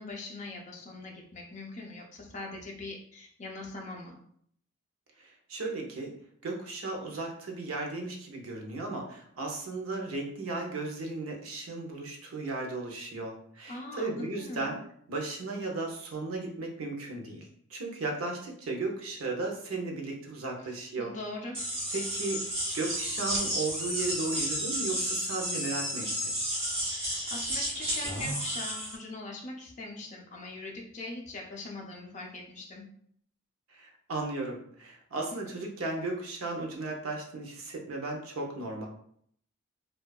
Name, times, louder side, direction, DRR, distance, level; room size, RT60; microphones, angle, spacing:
voice 1, 0.0-4.1 13.7-14.7 21.0-21.6 26.9-32.8, left 2 dB, 35° left, 0 dB, 0.4 m, -41 dB
voice 2, 5.2-6.1 6.4-14.8 15.1-21.1 21.9-26.3 33.7-38.9, right 3 dB, 80° right, 1 dB, 0.6 m, -35 dB
sound 1, 21.5-29.0, equal, 25° right, 0.9 m, -32 dB
2.6 x 2.2 x 2.2 m, 0.65 s
head